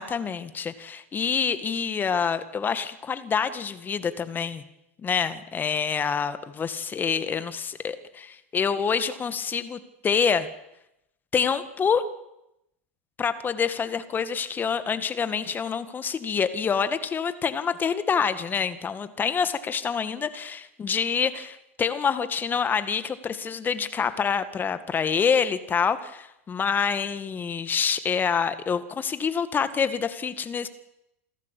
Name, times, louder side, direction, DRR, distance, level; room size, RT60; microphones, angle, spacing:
voice 1, 0.0-4.6 5.0-10.5 11.3-12.0 13.2-30.7, left 6 dB, 25° left, 12 dB, 2.0 m, -27 dB
27.5 x 13.0 x 8.6 m, 0.85 s
hypercardioid pair, 95°, 7 cm